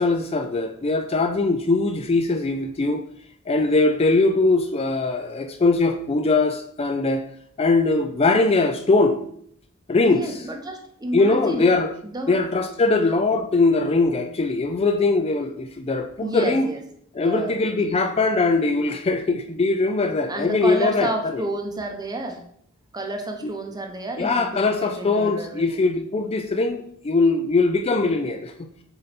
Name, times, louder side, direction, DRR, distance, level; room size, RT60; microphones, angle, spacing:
voice 1, 0.0-3.0 3.5-7.2 7.6-9.2 9.9-10.2 11.1-11.9 12.3-16.7 17.2-21.4 24.2-28.7, left 3 dB, 30° left, 6 dB, 0.4 m, -21 dB
voice 2, 10.0-11.7 12.0-12.4 16.2-16.8 17.1-18.0 20.3-22.4 22.9-25.8, right 1 dB, 20° right, 3 dB, 0.8 m, -31 dB
6.8 x 4.0 x 4.1 m, 0.66 s
head